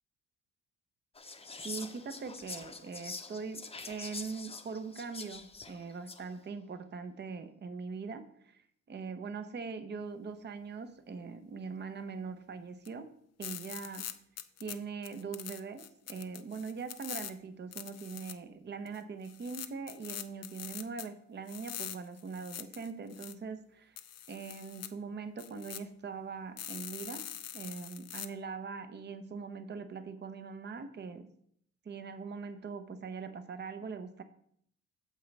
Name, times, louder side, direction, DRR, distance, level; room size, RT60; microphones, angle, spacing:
Whispering, 1.1-6.3, left 4 dB, 20° left, 0.8 m, -45 dB
voice 1, 1.6-8.6 8.9-13.1 13.4-14.1 14.6-24.0 24.3-27.2 27.5-31.3 31.8-34.2, right 5 dB, 35° right, 9 dB, 0.8 m, -42 dB
sound 1, 12.8-12.9 13.4-14.7 15.0-17.3 17.7-18.3 18.9-19.0 19.2-21.1 21.5-23.3 24.0-24.9 25.4-25.8 26.6-28.3, left 10 dB, 55° left, 0.7 m, -43 dB
9.1 x 7.0 x 3.4 m, 0.66 s
cardioid pair, 90°, 30 cm